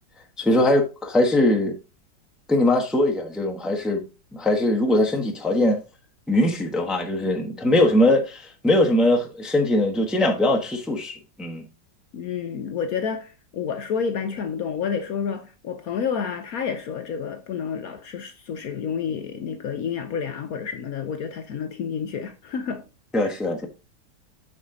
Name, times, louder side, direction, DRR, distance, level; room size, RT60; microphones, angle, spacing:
voice 1, 0.4-1.7 2.5-4.0 4.3-5.8 6.3-11.6 23.1-23.7, left 1 dB, ahead, 0.9 m, -21 dB
voice 2, 12.1-22.8, left 6 dB, 65° left, 1.1 m, -29 dB
7.1 x 5.9 x 3.8 m
omnidirectional pair, 1.9 m